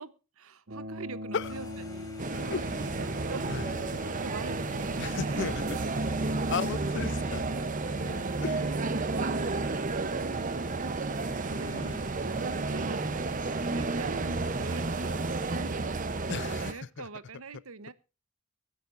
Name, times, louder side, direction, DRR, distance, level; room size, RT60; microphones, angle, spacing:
voice 1, 0.0-2.5 3.0-3.6 4.0-5.5 7.9-9.9 11.3-15.1 15.5-17.9, right 4 dB, 85° right, 0.9 m, -44 dB
sound 1, 0.7-10.8, left 2 dB, 60° right, 2.7 m, -44 dB
sound 2, 1.4-16.5, left 1 dB, 20° left, 3.5 m, -48 dB
sound 3, 2.2-16.7, right 3 dB, 40° right, 0.8 m, -31 dB
voice 2, 2.3-3.0 3.5-3.7 5.0-5.6 6.5-7.4 8.4-8.5 11.6-12.1 16.3-17.1, left 5 dB, 55° left, 0.5 m, -35 dB
22.5 x 10.0 x 2.5 m
head